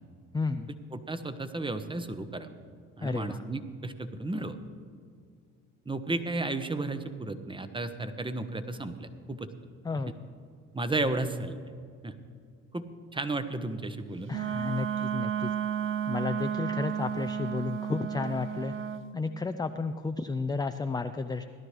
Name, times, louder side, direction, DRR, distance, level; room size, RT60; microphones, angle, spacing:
voice 1, 0.3-0.7 3.0-3.4 9.8-10.2 14.3-15.6 16.1-18.8 19.1-21.4, left 4 dB, 10° left, 8 dB, 0.4 m, -32 dB
voice 2, 0.9-2.5 3.0-4.6 5.9-9.5 10.7-11.6 12.0-12.1 12.7-12.9 13.1-14.3, right 2 dB, 15° right, 10 dB, 0.9 m, -33 dB
Wind instrument woodwind instrument, 14.3-19.1, right 9 dB, 35° right, 0.7 m, -32 dB
17.5 x 11.5 x 3.3 m, 2.2 s
hypercardioid pair, 55°, 38 cm